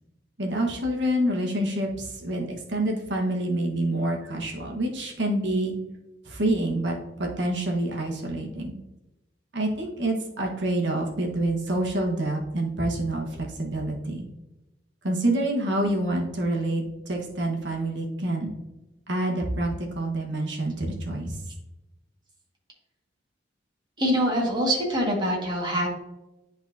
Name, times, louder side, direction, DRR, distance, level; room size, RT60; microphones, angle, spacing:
voice 1, 0.4-5.7 6.2-8.7 9.5-14.2 15.0-18.5 19.1-21.4, right 1 dB, 70° right, 0 dB, 1.4 m, -27 dB
voice 2, 24.0-25.9, equal, 25° right, -2 dB, 1.8 m, -24 dB
10.5 x 4.0 x 2.8 m, 0.96 s
head